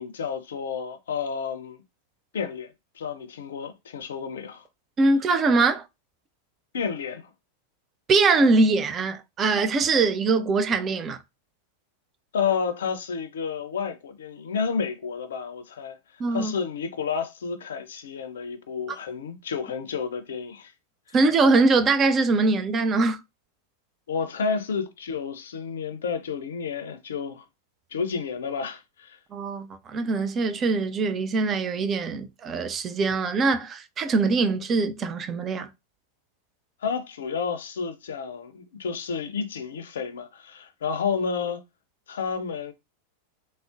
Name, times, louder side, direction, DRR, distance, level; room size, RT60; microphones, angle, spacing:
voice 1, 0.0-1.8 2.3-4.6 6.7-7.3 12.3-20.7 24.1-27.4 27.9-29.2 36.8-41.6 42.1-42.7, left 6 dB, 65° left, 0.4 m, -31 dB
voice 2, 5.0-5.8 8.1-11.2 16.2-16.5 21.1-23.2 29.3-35.7, right 3 dB, 25° right, 0.4 m, -22 dB
3.6 x 2.0 x 2.4 m
figure-of-eight pair, 90°, 0 cm